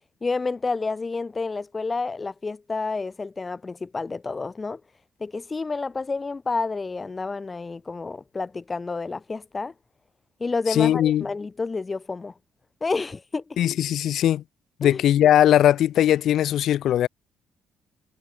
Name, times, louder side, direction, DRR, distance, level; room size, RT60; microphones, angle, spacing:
voice 1, 0.2-4.8 5.2-9.7 10.4-12.3 12.8-13.6 14.8-15.0, left 4 dB, 30° left, 2.3 m, -29 dB
voice 2, 10.7-11.2 13.6-14.4 14.8-17.1, left 11 dB, 75° left, 0.9 m, -19 dB
cardioid pair, 90°, 0 cm